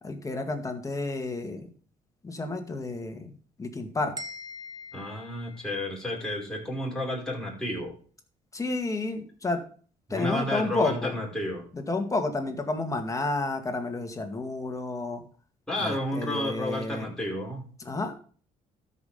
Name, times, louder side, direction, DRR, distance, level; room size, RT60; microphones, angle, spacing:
voice 1, 0.0-1.7 2.2-3.3 3.6-4.1 8.5-9.6 10.1-11.1 11.7-15.2 15.8-17.1 17.9-18.2, left 2 dB, 20° left, 5 dB, 2.0 m, -31 dB
sound 1, 4.2-6.2, left 2 dB, 25° right, 1.4 m, -43 dB
voice 2, 4.9-8.0 10.1-11.6 15.7-17.7, left 1 dB, 5° left, -3 dB, 5.5 m, -31 dB
13.0 x 5.7 x 5.1 m, 0.43 s
cardioid pair, 95°, 15 cm